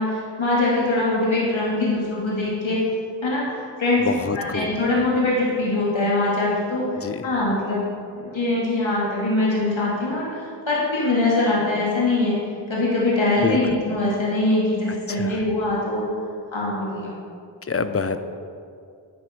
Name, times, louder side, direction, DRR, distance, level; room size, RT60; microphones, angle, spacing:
voice 1, 0.0-2.8 3.2-4.0 4.3-7.9 8.1-12.4 12.7-16.1 16.5-17.2, left 2 dB, 80° left, -6 dB, 2.6 m, -23 dB
voice 2, 4.0-4.8 7.0-7.3 13.4-13.6 14.9-15.5 17.6-18.2, left 4 dB, 30° left, 10 dB, 0.7 m, -27 dB
9.9 x 9.4 x 5.3 m, 2.3 s
wide cardioid pair, 50°, 45 cm